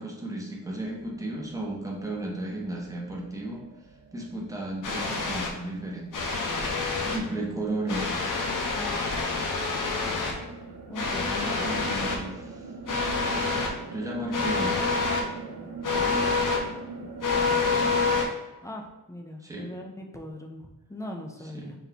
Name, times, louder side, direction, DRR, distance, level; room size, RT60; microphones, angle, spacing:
voice 1, 0.0-3.6 4.1-8.1 11.6-12.6 13.9-14.8 19.4-19.7 21.5-21.7, right 1 dB, 10° right, -3 dB, 0.7 m, -34 dB
sound 1, 0.6-18.2, right 3 dB, 65° right, 0.8 m, -43 dB
sound 2, 4.8-5.5 6.1-7.2 7.9-10.3 10.9-12.1 12.9-13.7 14.3-15.2 15.8-16.6 17.2-18.2, left 4 dB, 60° left, 0.7 m, -27 dB
voice 2, 8.7-9.1 10.9-11.8 15.6-16.3 18.6-21.8, left 1 dB, 10° left, 1 dB, 0.3 m, -40 dB
3.8 x 3.5 x 2.8 m, 1.0 s
wide cardioid pair, 175°, 37 cm